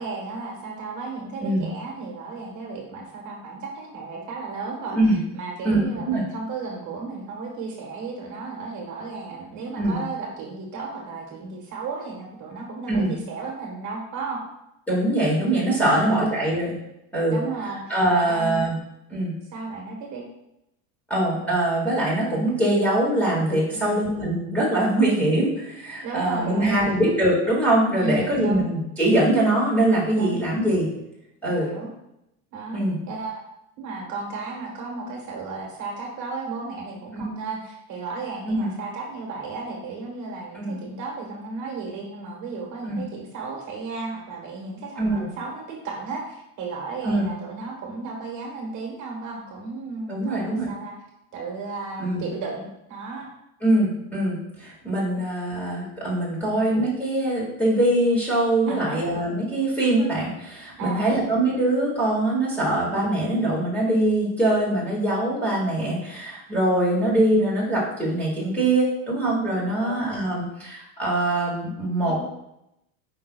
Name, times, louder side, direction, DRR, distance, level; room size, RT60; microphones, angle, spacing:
voice 1, 0.0-14.4 15.9-16.2 17.3-18.7 19.5-20.2 23.7-24.0 26.0-27.1 28.0-28.6 30.1-30.4 31.5-31.9 32.5-32.8 33.1-33.4 33.8-50.9 51.3-53.3 56.4-56.6 58.7-59.0 60.8-61.2 69.8-70.2 72.0-72.2, right 3 dB, 35° right, -1 dB, 1.3 m, -34 dB
voice 2, 5.6-6.2 9.8-10.0 12.9-13.1 14.9-16.7 17.1-17.4 17.9-18.7 19.1-19.3 21.1-30.9 31.4-31.7 32.7-33.0 37.1-37.2 38.4-38.7 40.5-40.8 42.9-43.0 45.0-45.3 47.0-47.3 50.1-50.7 52.0-52.2 53.6-72.2, right 1 dB, 5° left, -6 dB, 2.0 m, -23 dB
8.5 x 5.4 x 2.3 m, 0.86 s
cardioid pair, 170°, 49 cm